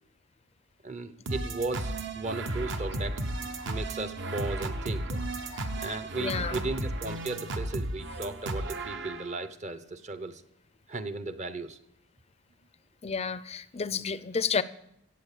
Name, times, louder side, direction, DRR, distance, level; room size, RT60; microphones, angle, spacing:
voice 1, 0.8-3.2 3.7-5.1 5.8-10.4 10.9-11.8, right 3 dB, 35° right, 0.8 m, -36 dB
sound 1, 1.3-9.5, right 2 dB, 55° right, 1.0 m, -34 dB
voice 2, 5.5-6.7 13.0-14.6, left 5 dB, 30° left, 0.5 m, -32 dB
16.5 x 7.8 x 6.8 m
head